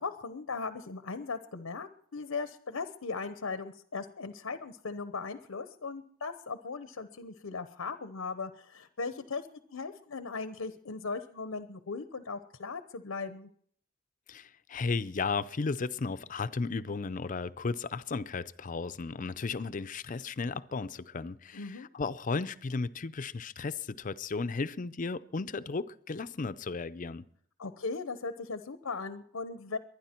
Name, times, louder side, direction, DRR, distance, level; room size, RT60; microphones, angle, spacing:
voice 1, 0.0-13.5 21.5-21.9 27.6-29.8, left 4 dB, 90° left, 0.8 m, -38 dB
voice 2, 14.3-27.2, left 4 dB, 40° left, 0.5 m, -34 dB
23.0 x 10.0 x 4.4 m
head